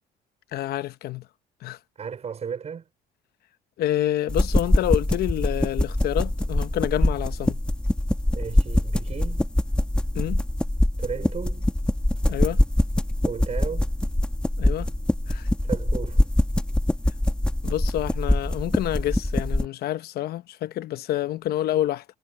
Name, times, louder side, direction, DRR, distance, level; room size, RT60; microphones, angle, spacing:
voice 1, 0.5-1.2 1.6-1.8 3.8-7.6 10.1-10.4 12.3-12.6 14.6-14.9 15.3-15.5 17.6-22.0, left 13 dB, 70° left, 0.9 m, -28 dB
voice 2, 2.0-2.8 8.3-9.5 11.0-11.7 13.2-13.9 15.6-16.2, right 7 dB, 40° right, 5.1 m, -34 dB
sound 1, 4.3-19.7, left 1 dB, 5° left, 1.7 m, -24 dB
cardioid pair, 110°, 17 cm